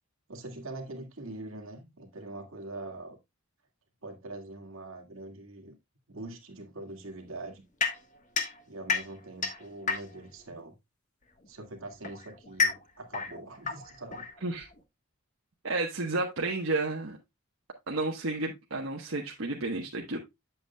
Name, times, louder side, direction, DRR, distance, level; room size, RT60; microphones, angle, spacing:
voice 1, 0.3-3.2 4.0-5.8 6.1-7.6 8.7-10.8 11.5-14.3, right 2 dB, 90° right, 2.0 m, -43 dB
sound 1, 7.8-10.4 11.4-14.8, left 5 dB, 40° left, 1.2 m, -32 dB
voice 2, 15.6-17.2 17.9-20.2, right 2 dB, 70° right, 1.2 m, -31 dB
8.1 x 7.9 x 2.3 m
head